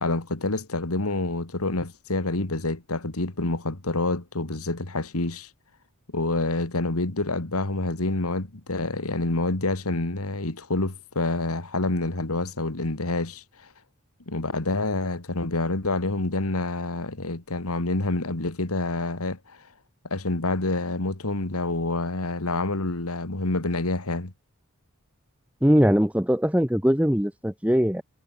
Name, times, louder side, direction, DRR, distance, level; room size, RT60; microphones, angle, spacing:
voice 1, 0.0-5.5 6.1-13.7 14.3-19.6 20.0-24.3, left 2 dB, 80° left, 2.2 m, -27 dB
voice 2, 25.6-28.0, equal, 5° right, 1.5 m, -21 dB
head